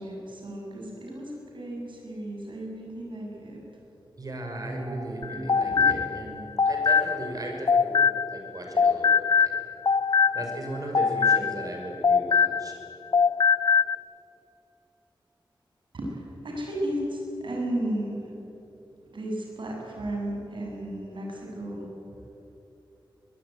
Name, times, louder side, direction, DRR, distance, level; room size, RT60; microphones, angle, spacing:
voice 1, 0.0-3.6 4.6-6.2 15.9-18.5 19.1-21.9, right 1 dB, 70° right, -1 dB, 7.7 m, -34 dB
voice 2, 4.2-9.5 10.3-12.7, right 1 dB, 45° right, 2 dB, 5.7 m, -36 dB
sound 1, 5.2-8.5 8.8-12.9 13.1-14.0, left 5 dB, 50° left, 0.5 m, -23 dB
22.0 x 22.0 x 9.7 m, 3.0 s
wide cardioid pair, 120°, 9 cm